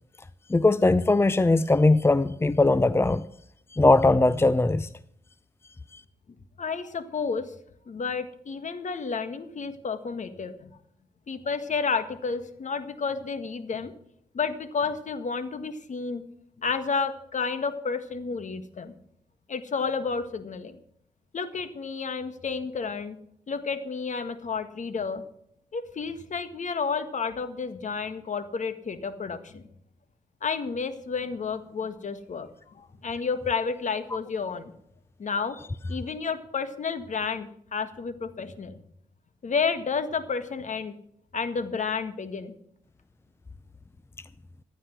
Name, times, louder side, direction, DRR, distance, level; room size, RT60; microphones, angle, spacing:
voice 1, 0.5-3.2 3.7-4.9 5.9-6.0, left 2 dB, 15° left, 0.6 m, -20 dB
voice 2, 6.6-7.5 7.9-10.7 11.3-13.9 14.3-16.2 16.6-19.0 19.5-20.8 21.3-23.2 23.5-25.2 25.7-29.6 30.4-32.5 32.7-34.7 35.2-35.6 35.9-38.8 39.4-40.9 41.3-42.5, left 5 dB, 55° left, 1.7 m, -31 dB
15.0 x 10.5 x 6.1 m
supercardioid pair, 50°, 15 cm